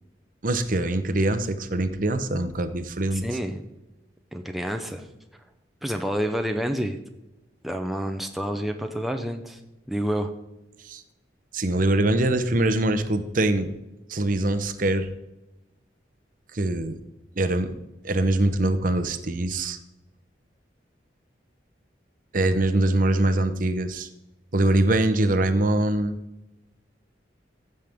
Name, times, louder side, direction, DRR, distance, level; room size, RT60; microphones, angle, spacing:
voice 1, 0.4-3.2 10.8-11.0 11.5-13.7 14.1-15.1 16.5-17.0 17.4-17.8 18.0-19.8 22.3-24.1 24.5-26.2, right 1 dB, 45° right, 10 dB, 0.8 m, -23 dB
voice 2, 3.1-3.6 4.3-5.1 5.8-7.0 7.6-9.6 9.9-10.3, equal, ahead, 5 dB, 0.6 m, -28 dB
15.0 x 6.6 x 3.6 m, 0.98 s
head